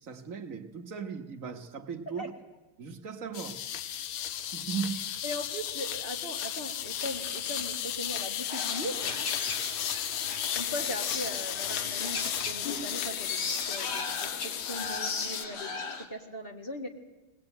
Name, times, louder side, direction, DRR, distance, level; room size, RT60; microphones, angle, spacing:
voice 1, 0.0-2.2 2.8-3.6 4.5-5.0, right 6 dB, 45° right, 6 dB, 1.4 m, -37 dB
sound 1, 3.3-15.4, left 10 dB, 85° left, 1.8 m, -35 dB
Crumpling crinkling, 4.3-12.9, left 4 dB, 50° left, 2.0 m, -46 dB
voice 2, 5.2-9.0 10.6-16.9, equal, 25° left, 3 dB, 2.0 m, -39 dB
sound 2, 8.5-16.1, left 4 dB, 70° left, 2.7 m, -37 dB
20.0 x 19.5 x 8.9 m, 1.1 s
omnidirectional pair, 2.3 m